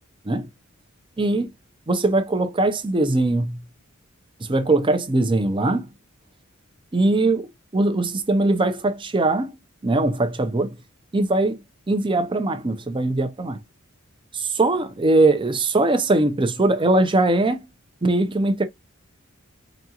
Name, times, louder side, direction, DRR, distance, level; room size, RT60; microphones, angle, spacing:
voice 1, 1.2-1.5 1.9-3.6 4.5-5.9 6.9-7.5 7.7-9.5 9.8-10.8 11.1-11.6 11.9-13.6 14.3-17.7 18.0-18.6, right 2 dB, 25° right, 0.6 m, -21 dB
5.0 x 2.4 x 2.9 m
head